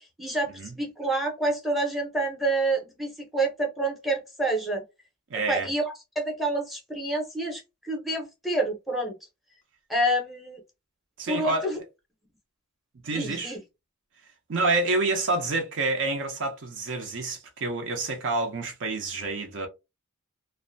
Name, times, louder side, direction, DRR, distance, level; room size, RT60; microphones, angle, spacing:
voice 1, 0.0-4.8 5.5-9.2 9.9-10.6 11.3-11.8 13.1-13.6, right 2 dB, ahead, 0.7 m, -28 dB
voice 2, 5.3-5.7 11.2-11.7 13.0-13.5 14.5-19.7, right 3 dB, 55° right, 0.6 m, -28 dB
2.6 x 2.1 x 2.6 m
head